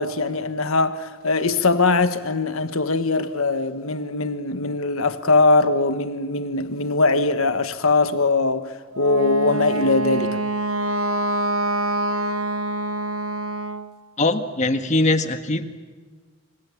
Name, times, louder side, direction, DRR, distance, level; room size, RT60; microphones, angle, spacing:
voice 1, 0.0-10.4, left 3 dB, 75° left, 1.5 m, -21 dB
Wind instrument woodwind instrument, 8.9-13.9, right 2 dB, 80° right, 1.3 m, -25 dB
voice 2, 14.2-15.7, left 2 dB, 35° left, 1.6 m, -21 dB
27.0 x 26.0 x 7.3 m
head